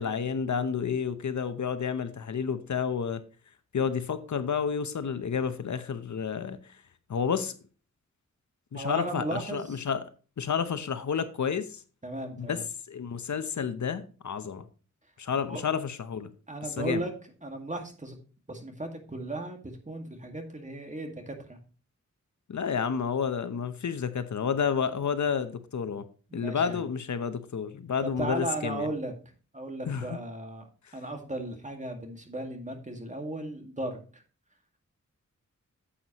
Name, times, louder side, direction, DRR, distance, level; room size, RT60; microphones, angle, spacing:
voice 1, 0.0-3.2 3.7-6.8 7.1-7.5 8.7-10.0 10.4-11.8 12.4-12.6 12.9-14.7 15.2-16.3 16.8-17.0 22.5-26.0 26.3-28.9 29.9-30.2 30.8-30.9, left 6 dB, 75° left, 0.9 m, -30 dB
voice 2, 8.7-9.8 12.0-12.6 15.5-15.6 16.5-17.1 17.4-18.2 18.5-21.6 26.3-26.8 28.0-29.1 29.5-30.7 30.9-34.2, right 2 dB, 25° right, 1.9 m, -36 dB
9.8 x 8.0 x 3.0 m
wide cardioid pair, 110°, 30 cm